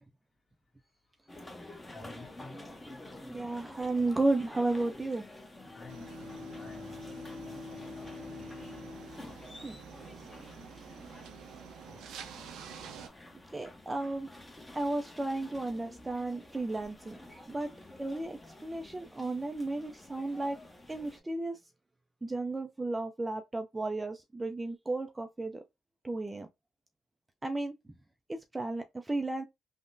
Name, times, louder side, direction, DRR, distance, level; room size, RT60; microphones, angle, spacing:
sound 1, 1.3-21.2, left 1 dB, 15° left, 0.7 m, -50 dB
voice 1, 1.8-2.4 2.9-3.0 5.7-7.1 7.4-8.8 11.8-12.0, left 2 dB, 30° left, 1.5 m, -53 dB
voice 2, 3.3-5.2 9.6-9.8 13.5-14.3 14.7-17.2 17.5-17.7 18.0-20.6 20.9-21.6 22.2-25.6 26.0-26.5 27.4-27.7 28.3-29.4, right 2 dB, 15° right, 0.3 m, -33 dB
Bowed string instrument, 5.5-10.1, left 4 dB, 60° left, 0.5 m, -46 dB
sound 2, 5.9-13.1, right 7 dB, 85° right, 0.5 m, -49 dB
3.5 x 2.0 x 2.6 m
cardioid pair, 90°, 0 cm